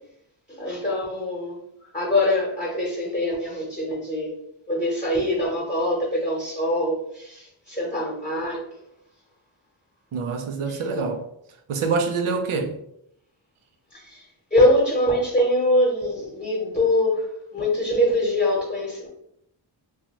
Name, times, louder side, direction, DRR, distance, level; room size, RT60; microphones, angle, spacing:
voice 1, 0.5-1.6 1.9-4.4 4.7-8.6 10.7-10.8 13.9-14.2 14.5-17.3 17.5-19.1, left 1 dB, 15° left, -5 dB, 1.0 m, -23 dB
voice 2, 10.1-11.3 11.7-12.8, right 4 dB, 80° right, 5 dB, 0.6 m, -25 dB
2.6 x 2.3 x 2.9 m, 0.76 s
cardioid pair, 50°, 49 cm